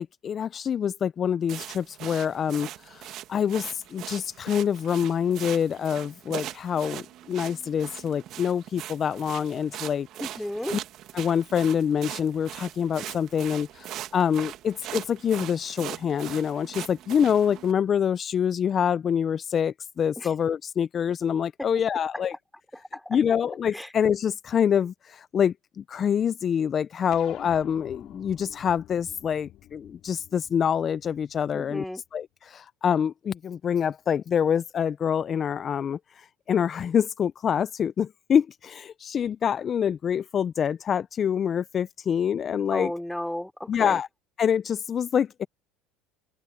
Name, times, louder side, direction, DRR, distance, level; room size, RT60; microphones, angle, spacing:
voice 1, 0.0-10.4 11.1-22.4 23.1-42.9 43.7-44.1 44.4-45.5, left 8 dB, 40° left, 0.5 m, -26 dB
sound 1, 1.5-17.7, right 13 dB, 55° right, 1.8 m, -40 dB
voice 2, 10.2-10.8 20.2-20.3 22.9-23.0 23.7-23.9 31.5-32.0 42.7-44.0, left 1 dB, 5° left, 3.3 m, -33 dB
sound 2, 27.1-31.8, left 14 dB, 55° left, 3.9 m, -48 dB
supercardioid pair, 100°, 0 cm